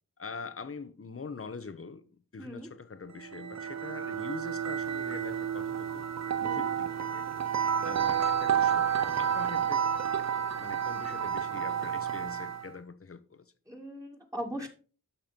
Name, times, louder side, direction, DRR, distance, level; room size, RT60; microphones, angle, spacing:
voice 1, 0.2-2.0 2.3-6.1 6.4-7.2 7.8-9.8 10.2-10.3 10.6-13.4, left 4 dB, 40° left, 1.1 m, -43 dB
voice 2, 2.4-2.7 6.4-6.7 13.7-14.7, equal, 10° right, 2.3 m, -39 dB
sound 1, 3.2-12.7, right 8 dB, 50° right, 0.7 m, -30 dB
12.0 x 5.8 x 4.5 m
wide cardioid pair, 75°, 34 cm